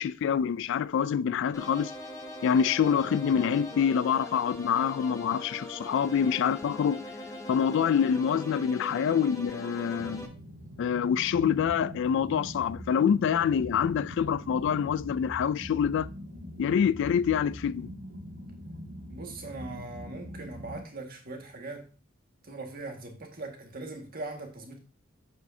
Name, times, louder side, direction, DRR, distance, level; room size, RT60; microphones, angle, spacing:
voice 1, 0.0-1.9 2.4-7.0 7.5-10.3 10.8-16.1 16.6-17.9, left 7 dB, 60° left, 0.3 m, -26 dB
sound 1, 1.5-10.3, left 1 dB, 15° left, 1.1 m, -41 dB
sound 2, 10.0-20.8, equal, 65° right, 2.4 m, -43 dB
voice 2, 19.1-21.9 22.4-24.8, right 2 dB, 45° right, 1.8 m, -40 dB
8.0 x 7.6 x 2.7 m
head